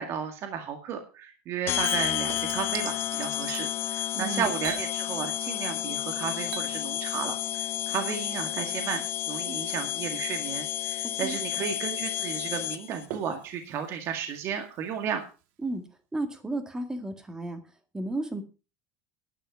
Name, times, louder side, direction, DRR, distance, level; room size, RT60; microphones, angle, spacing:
voice 1, 0.0-15.2, right 7 dB, 45° right, 5 dB, 2.0 m, -34 dB
sound 1, 1.7-13.1, left 13 dB, 40° left, 0.6 m, -31 dB
Chink clink / Liquid, 1.8-3.7 4.6-5.8 6.0-15.1 15.4-15.5, right 10 dB, 70° right, 1.7 m, -46 dB
voice 2, 4.1-4.5 11.2-11.4 15.6-17.6 17.9-18.4, right 2 dB, 10° right, 7 dB, 1.9 m, -33 dB
11.5 x 9.0 x 5.7 m, 0.33 s
cardioid pair, 150°, 7 cm